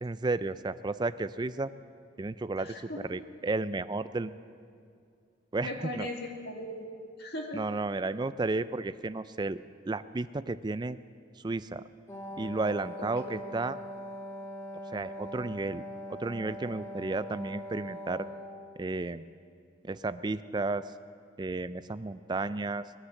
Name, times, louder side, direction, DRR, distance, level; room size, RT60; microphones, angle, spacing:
voice 1, 0.0-1.7 2.2-2.8 3.0-4.3 5.5-6.1 7.5-11.0 11.4-11.8 12.4-13.8 14.9-15.8 16.1-18.3 18.8-19.2 19.8-20.8 21.4-22.8, right 3 dB, 20° right, 14 dB, 0.4 m, -32 dB
voice 2, 2.6-3.1 5.6-6.9 7.2-7.6 13.0-13.4, left 1 dB, 55° left, 2 dB, 2.1 m, -38 dB
Wind instrument woodwind instrument, 12.1-18.8, equal, 15° left, 1.2 m, -42 dB
20.5 x 9.8 x 7.2 m, 2.3 s
head